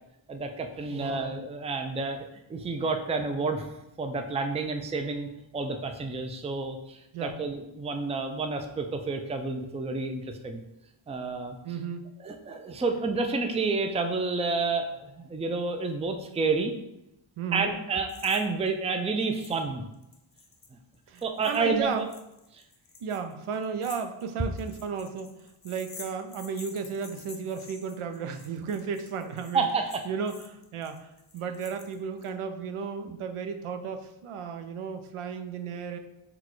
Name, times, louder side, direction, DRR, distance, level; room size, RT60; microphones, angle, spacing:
voice 1, 0.3-2.2 2.5-3.7 4.0-5.3 5.5-10.6 11.1-11.6 12.2-16.7 17.5-19.8 21.2-22.1 22.5-22.6 29.5-30.0, right 4 dB, 15° right, 6 dB, 0.3 m, -29 dB
voice 2, 0.9-1.4 7.1-7.4 11.6-12.1 17.4-17.7 21.1-22.1 23.0-29.7 30.1-31.1 31.3-36.0, right 6 dB, 85° right, 7 dB, 0.5 m, -34 dB
sound 1, 18.1-18.4 18.7-18.8 19.3-19.6 19.9-32.3, left 4 dB, 35° left, 0.6 m, -49 dB
6.0 x 2.2 x 3.0 m, 0.88 s
wide cardioid pair, 80°, 49 cm